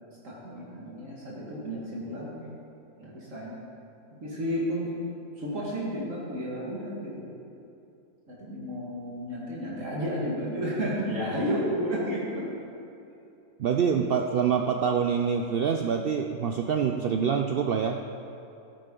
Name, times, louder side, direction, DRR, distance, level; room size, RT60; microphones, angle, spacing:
voice 1, 0.2-2.4 3.0-3.6 4.2-4.9 5.4-7.3 8.3-12.4, equal, 60° right, -6 dB, 2.1 m, -32 dB
voice 2, 13.6-18.0, right 7 dB, 85° right, 4 dB, 0.5 m, -26 dB
13.5 x 10.0 x 3.8 m, 2.8 s
omnidirectional pair, 1.6 m